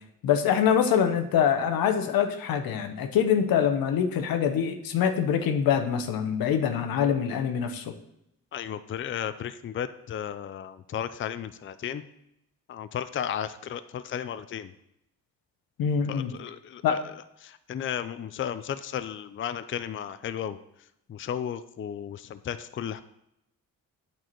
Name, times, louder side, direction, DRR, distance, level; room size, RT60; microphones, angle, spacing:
voice 1, 0.2-7.9 15.8-16.3 16.8-17.0, left 8 dB, 90° left, 7 dB, 0.9 m, -24 dB
voice 2, 8.5-12.0 12.7-14.7 16.1-17.0 17.4-20.6 21.1-23.0, left 9 dB, 35° left, 12 dB, 0.4 m, -34 dB
8.8 x 4.6 x 4.5 m, 0.81 s
cardioid pair, 85°, 34 cm